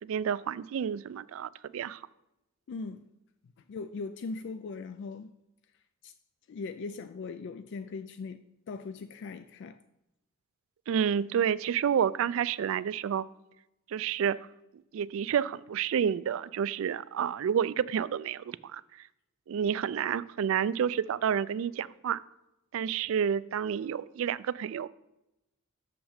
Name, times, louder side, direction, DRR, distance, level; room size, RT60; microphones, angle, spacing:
voice 1, 0.0-2.0 10.9-13.3 13.9-14.4 14.9-18.8 19.5-22.2 22.7-24.9, right 8 dB, 65° right, 0.3 m, -29 dB
voice 2, 2.7-3.1 3.4-5.3 6.0-6.1 6.5-9.8, left 4 dB, 55° left, 0.3 m, -40 dB
6.4 x 5.8 x 6.5 m
head